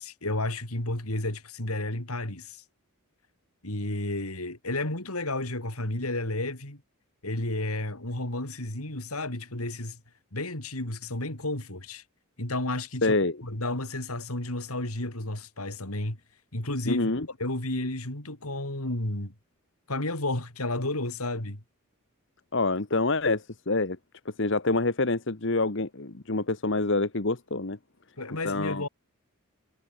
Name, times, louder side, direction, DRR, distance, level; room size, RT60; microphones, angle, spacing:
voice 1, 0.0-2.6 3.6-6.8 7.2-10.0 10.3-12.0 12.4-13.2 13.4-16.2 16.5-17.1 17.4-19.3 19.9-21.6 28.2-28.9, left 2 dB, 85° left, 4.8 m, -32 dB
voice 2, 13.0-13.4 16.9-17.3 22.5-24.0 24.2-27.8 28.4-28.9, left 3 dB, 55° left, 1.3 m, -26 dB
head